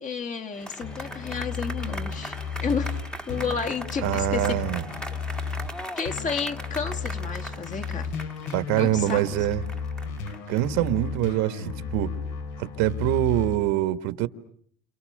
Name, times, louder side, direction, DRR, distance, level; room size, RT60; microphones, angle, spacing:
voice 1, 0.0-3.0 3.3-4.6 5.1-5.2 6.0-8.1 8.8-9.3, left 5 dB, 25° left, 1.9 m, -31 dB
sound 1, 0.5-11.9, equal, 5° left, 1.6 m, -40 dB
sound 2, 0.8-5.7 6.1-13.6, left 5 dB, 75° left, 4.6 m, -34 dB
voice 2, 4.0-4.8 8.5-9.6 10.5-12.1 12.6-14.3, right 14 dB, 75° right, 1.8 m, -24 dB
29.5 x 28.0 x 6.8 m
cardioid pair, 160°, 29 cm